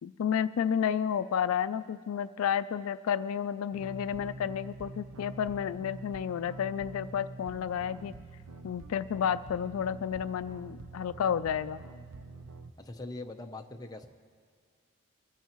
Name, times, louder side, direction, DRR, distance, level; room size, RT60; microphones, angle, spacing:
voice 1, 0.0-8.1 8.6-11.8, left 8 dB, 75° left, 13 dB, 0.3 m, -31 dB
sound 1, 3.7-12.7, right 2 dB, 75° right, 0.7 m, -46 dB
voice 2, 12.8-14.1, left 2 dB, 15° left, 4 dB, 0.7 m, -42 dB
24.0 x 13.5 x 3.0 m, 2.1 s
head